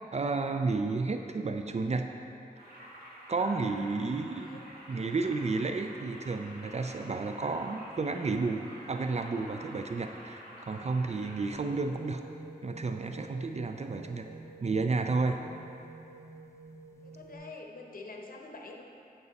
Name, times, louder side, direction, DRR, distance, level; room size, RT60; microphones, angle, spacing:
voice 1, 0.1-2.1 3.3-4.6 4.9-12.2 12.6-14.3 14.6-15.4, right 3 dB, 45° right, 6 dB, 0.4 m, -31 dB
sound 1, 2.6-11.5, equal, 80° right, 2.0 m, -49 dB
sound 2, 11.7-17.4, right 2 dB, 15° left, 0.7 m, -49 dB
voice 2, 13.8-14.4 17.0-18.8, left 3 dB, 65° left, 1 dB, 1.0 m, -47 dB
9.7 x 5.4 x 4.1 m, 2.6 s
wide cardioid pair, 75°, 16 cm